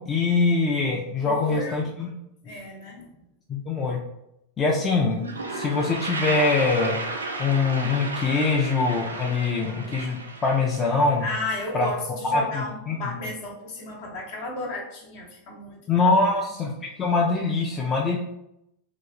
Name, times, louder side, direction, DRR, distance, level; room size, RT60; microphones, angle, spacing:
voice 1, 0.0-2.1 3.5-4.0 4.6-5.2 5.5-7.0 7.4-11.2 11.7-11.9 12.2-13.0 15.9-18.2, left 3 dB, 25° left, -1 dB, 0.4 m, -23 dB
voice 2, 1.2-1.9 2.4-3.2 11.2-16.3, left 2 dB, 55° left, -1 dB, 0.9 m, -33 dB
Toilet flush, 4.8-4.9 5.1-11.9, right 3 dB, 85° right, 0.4 m, -34 dB
2.9 x 2.7 x 2.4 m, 0.82 s
figure-of-eight pair, 90°, 0 cm